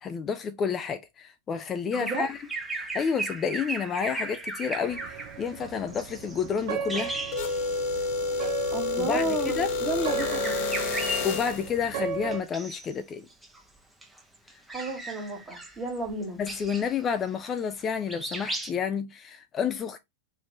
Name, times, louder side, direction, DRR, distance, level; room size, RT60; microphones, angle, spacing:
voice 1, 0.0-2.4 2.7-7.2 9.0-9.7 11.2-13.3 16.4-20.0, left 6 dB, 25° left, 0.3 m, -30 dB
Bird vocalization bird call bird song, 1.9-8.0 8.3-8.5 9.5-11.8 12.3-12.9 13.3-17.8 18.1-18.7, right 2 dB, 5° right, 0.7 m, -37 dB
voice 2, 2.0-2.3 8.7-10.6 14.7-16.4, right 1 dB, 20° right, 1.3 m, -32 dB
sound 1, 4.9-12.4, right 6 dB, 55° right, 0.6 m, -36 dB
sound 2, 7.3-11.7, left 3 dB, 50° left, 0.7 m, -29 dB
3.4 x 2.5 x 3.1 m
figure-of-eight pair, 95°, 0 cm